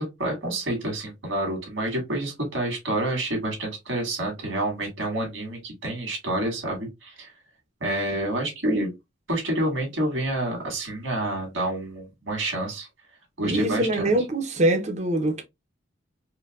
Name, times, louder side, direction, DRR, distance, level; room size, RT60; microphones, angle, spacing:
voice 1, 0.0-7.3 7.8-8.9 9.3-12.9 13.4-14.1, right 1 dB, 80° right, 1.8 m, -28 dB
voice 2, 13.4-15.4, right 1 dB, 35° right, 0.6 m, -23 dB
4.4 x 2.2 x 2.3 m
head